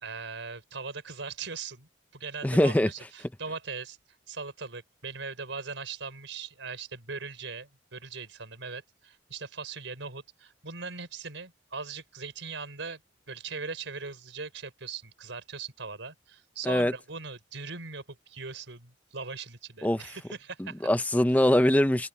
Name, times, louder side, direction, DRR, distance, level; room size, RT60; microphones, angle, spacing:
voice 1, 0.0-4.0 4.3-13.0 13.3-20.9, right 4 dB, 80° right, 4.2 m, -40 dB
voice 2, 2.4-2.9 16.7-16.9 19.8-20.0 20.8-22.1, left 1 dB, 10° left, 0.4 m, -22 dB
open air
head